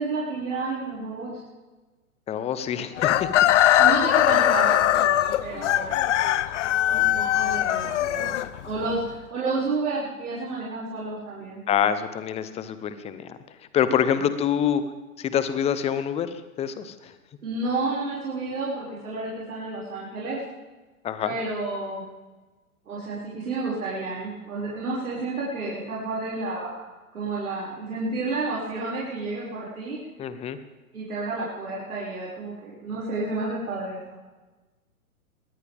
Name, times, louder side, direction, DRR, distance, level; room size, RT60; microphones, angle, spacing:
voice 1, 0.0-1.4 3.8-6.1 6.9-11.6 14.1-14.3 17.4-20.4 21.2-22.0 22.9-26.8 27.1-30.0 30.9-34.2, right 3 dB, 80° right, -7 dB, 6.0 m, -31 dB
voice 2, 2.3-3.3 11.7-13.3 13.7-14.8 15.2-16.3 16.6-17.1 21.0-21.3 30.2-30.6, left 9 dB, 15° left, 12 dB, 0.9 m, -26 dB
Chicken rooster, 3.0-8.9, left 12 dB, 55° left, 0.8 m, -21 dB
21.5 x 17.5 x 3.6 m, 1.2 s
hypercardioid pair, 130°, 44 cm